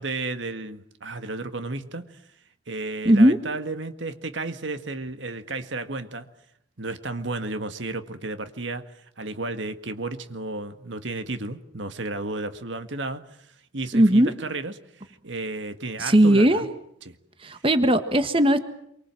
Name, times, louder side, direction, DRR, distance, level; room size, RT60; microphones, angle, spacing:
voice 1, 0.0-2.2 2.7-6.3 6.8-16.7 17.0-17.2 17.5-17.6, right 2 dB, 70° right, 9 dB, 1.8 m, -33 dB
voice 2, 3.0-3.4 13.9-14.3 16.0-16.7 17.4-18.6, right 1 dB, 30° right, 9 dB, 1.5 m, -18 dB
27.5 x 24.5 x 7.7 m, 0.72 s
head